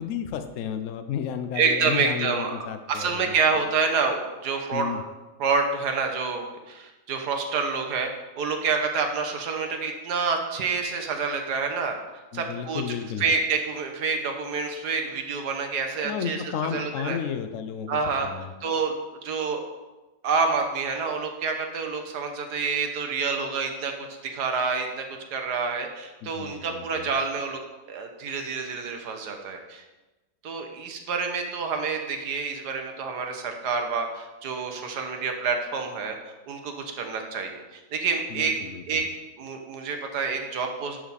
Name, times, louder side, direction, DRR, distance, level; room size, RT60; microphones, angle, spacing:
voice 1, 0.0-3.3 4.7-5.0 12.3-13.3 16.0-18.5 26.2-27.1 38.3-39.0, left 8 dB, 60° left, 9 dB, 1.0 m, -33 dB
voice 2, 1.6-2.5 2.9-5.0 5.4-8.1 8.4-12.0 12.3-12.8 13.2-16.4 16.7-17.2 17.9-18.3 18.6-19.0 19.2-19.6 20.2-23.9 24.2-25.1 25.3-27.6 27.9-29.8 30.4-36.1 36.5-38.5 38.9-39.0 39.4-41.0, right 5 dB, 80° right, 4 dB, 1.7 m, -27 dB
11.0 x 6.3 x 4.2 m, 1.1 s
omnidirectional pair, 1.7 m